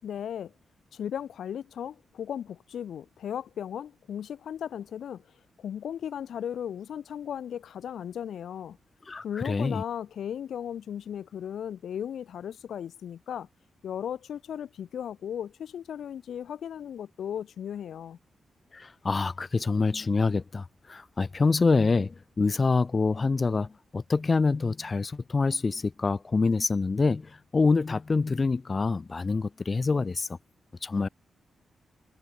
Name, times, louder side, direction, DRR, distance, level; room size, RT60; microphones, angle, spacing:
voice 1, 0.0-0.5 0.9-5.2 5.6-8.8 9.2-13.5 13.8-18.2, left 9 dB, 75° left, 4.4 m, -36 dB
voice 2, 9.1-9.8 18.7-30.4 30.8-31.1, left 4 dB, 25° left, 3.5 m, -26 dB
wide cardioid pair, 175°, 0 cm